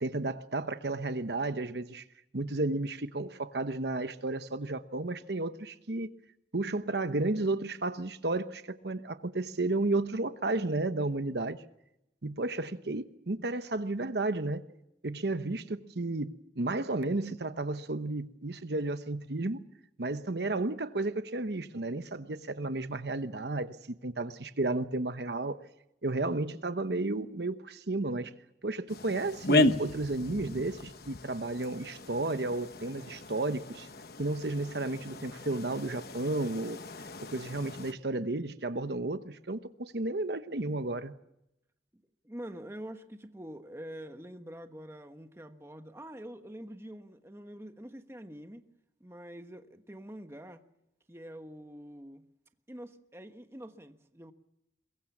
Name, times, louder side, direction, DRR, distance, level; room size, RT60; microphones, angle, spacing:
voice 1, 0.0-2.0 2.3-6.1 6.5-11.6 12.2-14.6 15.0-19.6 20.0-23.8 24.0-25.6 26.0-28.3 28.6-33.9 34.2-36.8 37.3-41.1, right 2 dB, 65° right, 1.0 m, -32 dB
sound 1, 28.9-37.9, left 2 dB, 55° left, 1.1 m, -34 dB
voice 2, 41.9-48.7 49.0-50.6 51.1-52.2 52.7-54.3, equal, 15° right, 1.2 m, -46 dB
23.0 x 22.0 x 7.3 m
head